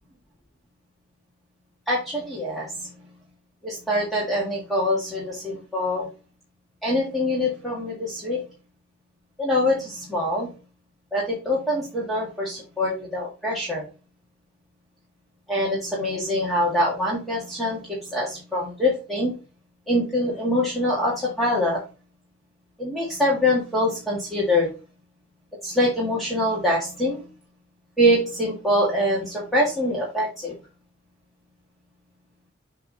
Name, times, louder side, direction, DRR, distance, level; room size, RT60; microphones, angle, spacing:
voice 1, 1.9-2.9 3.6-6.1 6.8-8.4 9.4-10.5 11.1-13.9 15.5-19.3 19.9-21.8 22.8-24.7 25.6-27.2 28.0-30.6, left 1 dB, ahead, -6 dB, 2.0 m, -24 dB
7.6 x 3.5 x 4.0 m, 0.31 s
head